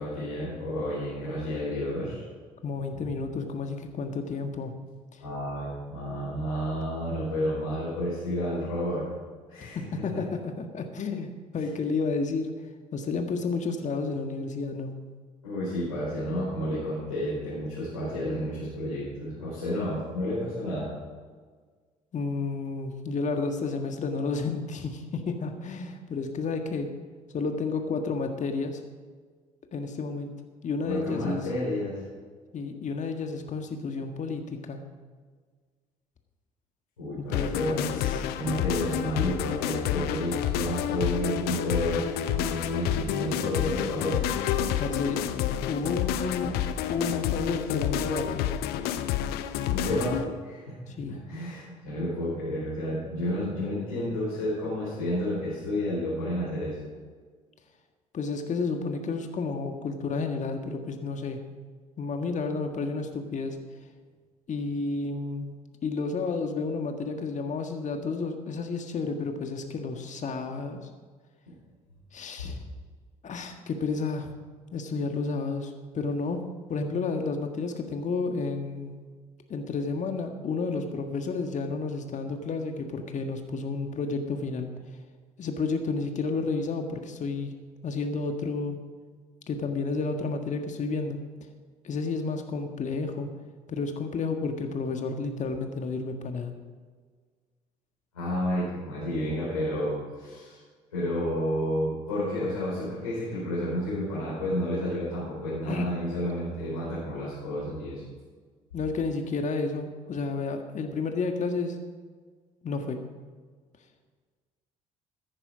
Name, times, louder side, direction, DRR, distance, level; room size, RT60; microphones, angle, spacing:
voice 1, 0.0-2.2 5.2-9.1 9.5-9.8 15.4-20.9 30.8-32.0 37.0-44.2 49.7-50.7 51.1-56.8 98.1-100.6 100.9-108.0, equal, 90° left, -11 dB, 5.0 m, -31 dB
voice 2, 2.6-4.7 9.7-10.3 10.6-12.5 12.9-15.0 22.1-26.9 27.3-28.8 29.7-30.3 30.6-31.4 32.5-34.8 37.2-38.2 44.8-45.3 45.7-46.5 46.9-48.5 50.9-51.2 58.1-61.4 62.0-63.6 64.5-65.5 65.8-70.8 72.1-72.5 73.2-74.3 74.7-76.4 76.7-79.0 79.5-84.7 85.4-87.5 87.8-88.8 89.5-91.2 91.8-93.3 93.7-96.5 105.7-105.9 108.7-111.8 112.6-113.1, left 4 dB, 45° left, 5 dB, 1.7 m, -31 dB
sound 1, 37.3-50.2, left 10 dB, 65° left, 0.8 m, -29 dB
15.0 x 10.0 x 5.1 m, 1.5 s
hypercardioid pair, 55°, 18 cm